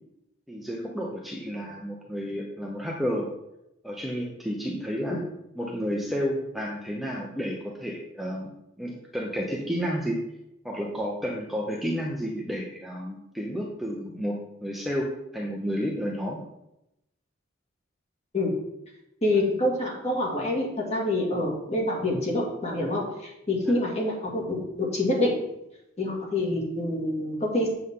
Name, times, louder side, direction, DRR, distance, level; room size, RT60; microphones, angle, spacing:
voice 1, 0.5-3.3 3.8-5.2 5.5-8.5 8.8-10.2 10.6-16.4 23.6-23.8, equal, ahead, -2 dB, 0.8 m, -31 dB
voice 2, 19.2-23.0 23.5-25.3 26.0-27.7, left 1 dB, 30° left, -2 dB, 2.3 m, -26 dB
8.0 x 7.6 x 3.8 m, 0.86 s
head